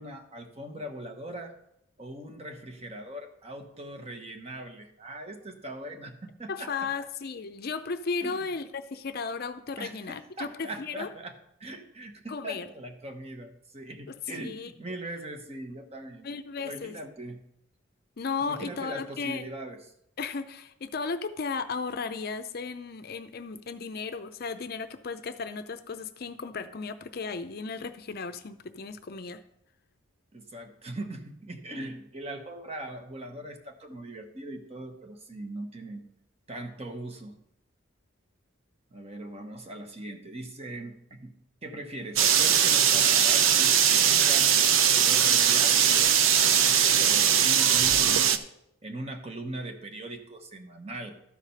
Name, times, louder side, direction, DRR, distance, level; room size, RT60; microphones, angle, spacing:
voice 1, 0.0-1.6 2.0-6.9 8.2-8.5 9.8-17.4 18.4-19.8 30.3-36.0 36.5-37.4 38.9-41.3 41.6-44.6 45.0-48.4 48.8-51.1, right 1 dB, 30° right, 5 dB, 1.0 m, -40 dB
voice 2, 6.5-11.1 12.3-12.7 14.4-14.7 16.2-17.0 18.2-19.5 20.2-29.4, left 4 dB, 50° left, 10 dB, 0.5 m, -35 dB
sound 1, 42.2-48.4, right 8 dB, 80° right, 0.6 m, -21 dB
12.5 x 5.0 x 5.6 m, 0.77 s
head